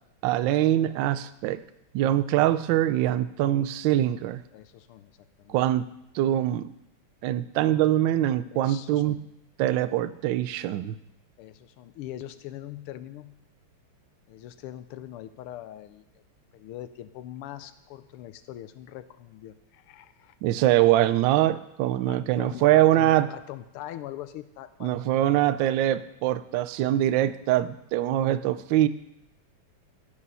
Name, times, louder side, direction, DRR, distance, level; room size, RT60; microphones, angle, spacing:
voice 1, 0.2-1.6 1.9-4.4 5.5-5.9 6.1-6.6 7.2-9.2 9.6-11.0 20.4-23.3 24.8-28.9, right 13 dB, 75° right, 12 dB, 1.1 m, -23 dB
voice 2, 4.5-5.1 5.4-5.6 8.5-9.2 11.4-13.4 14.3-16.0 16.5-20.4 22.1-25.0, left 12 dB, 85° left, 13 dB, 1.5 m, -42 dB
14.5 x 5.2 x 5.5 m, 0.81 s
omnidirectional pair, 2.4 m